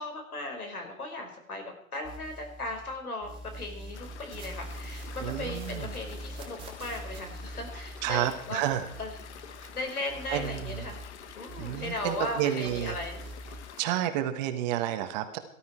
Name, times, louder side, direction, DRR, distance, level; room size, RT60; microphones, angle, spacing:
voice 1, 0.0-8.7 9.0-9.1 9.7-11.1 11.3-13.5, left 2 dB, 90° left, 4 dB, 5.3 m, -37 dB
sound 1, 2.0-2.9 3.2-9.8 10.1-12.4 12.6-13.6, right 1 dB, 10° right, 2.9 m, -43 dB
sound 2, 3.9-13.8, left 8 dB, 50° left, 1.4 m, -48 dB
voice 2, 5.2-5.9 8.0-8.9 9.6-9.7 10.3-10.8 11.6-13.0 13.8-15.4, right 12 dB, 30° right, 8 dB, 1.4 m, -30 dB
18.0 x 12.5 x 4.5 m, 0.65 s
hypercardioid pair, 145°, 43 cm